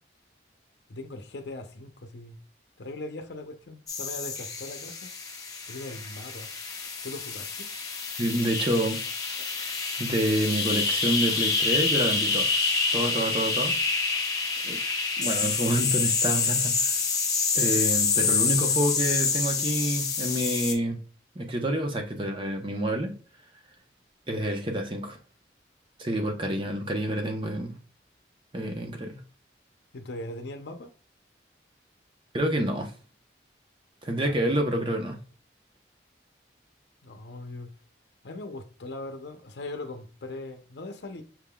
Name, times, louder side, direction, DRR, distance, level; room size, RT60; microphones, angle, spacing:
voice 1, 0.9-2.4 2.8-5.1 5.7-6.5 7.0-7.7 29.9-30.9 34.2-34.4 37.0-37.7 38.2-41.2, left 2 dB, 70° left, 0.7 m, -40 dB
sound 1, 3.9-20.7, left 4 dB, 20° left, 0.8 m, -27 dB
voice 2, 8.2-9.0 9.4-12.5 12.9-13.7 14.6-14.8 15.2-17.0 17.6-21.0 21.3-23.2 24.3-25.2 26.0-27.7 28.5-29.2 32.3-32.9 34.0-35.2, right 1 dB, 25° right, 0.8 m, -28 dB
6.0 x 3.6 x 2.3 m
head